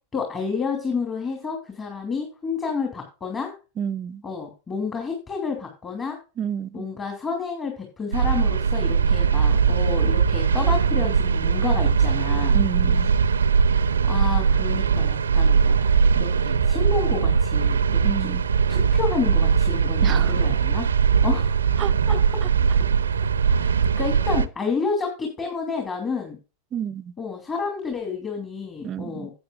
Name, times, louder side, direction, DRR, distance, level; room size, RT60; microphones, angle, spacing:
voice 1, 0.1-3.5 4.2-6.2 6.7-12.6 13.7-15.9 16.1-18.4 18.7-20.9 21.2-21.6 22.1-22.2 23.4-26.4 27.2-29.3, left 5 dB, 20° left, 2.9 m, -30 dB
voice 2, 3.8-4.2 6.4-6.9 12.5-13.1 18.0-18.4 20.0-20.3 21.8-22.5 26.7-27.1 28.8-29.3, right 8 dB, 30° right, 0.6 m, -30 dB
sound 1, 8.1-24.5, right 6 dB, 70° right, 0.7 m, -20 dB
15.5 x 8.3 x 2.5 m
figure-of-eight pair, 90°, 0 cm